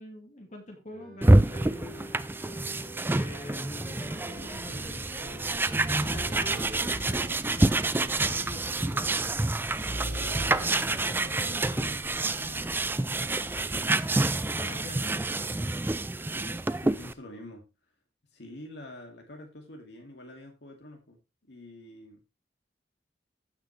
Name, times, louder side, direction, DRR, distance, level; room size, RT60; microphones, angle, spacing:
voice 1, 0.0-2.1 3.0-5.4 5.8-9.4 9.9-12.9 14.5-15.2, left 1 dB, 40° left, 2 dB, 2.4 m, -44 dB
sound 1, 0.9-6.6, right 1 dB, 45° right, 5.4 m, -47 dB
sound 2, 1.2-17.1, right 2 dB, 10° right, 0.4 m, -27 dB
sound 3, 4.3-13.8, right 1 dB, 85° right, 3.9 m, -43 dB
voice 2, 16.4-17.6 18.3-21.2 21.5-22.2, left 1 dB, 65° left, 2 dB, 2.4 m, -46 dB
15.0 x 6.0 x 3.3 m, 0.26 s
head